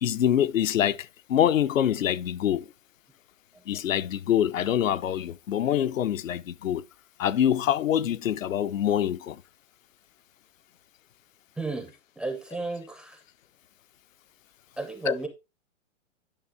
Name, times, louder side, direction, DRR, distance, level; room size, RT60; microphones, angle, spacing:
voice 1, 0.0-2.7 3.7-6.8 7.2-9.4 15.1-15.2, left 10 dB, 85° left, 0.7 m, -25 dB
voice 2, 11.6-13.2 14.8-15.3, right 3 dB, ahead, 0.4 m, -34 dB
10.5 x 5.4 x 3.4 m
hypercardioid pair, 140°, 39 cm